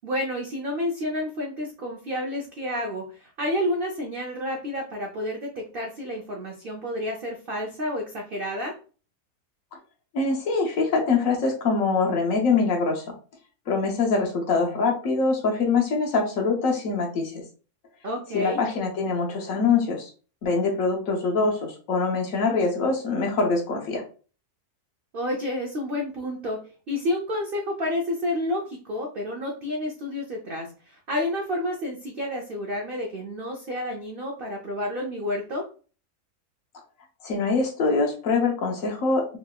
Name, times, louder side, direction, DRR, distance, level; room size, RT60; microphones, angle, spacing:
voice 1, 0.0-8.7 18.0-18.6 25.1-26.6 26.9-35.6, left 1 dB, 70° right, 0 dB, 0.5 m, -30 dB
voice 2, 10.1-13.0 13.7-17.4 18.3-20.1 20.4-24.0 37.2-39.3, left 4 dB, 65° left, 1 dB, 1.0 m, -24 dB
3.2 x 2.8 x 2.2 m, 0.38 s
omnidirectional pair, 1.6 m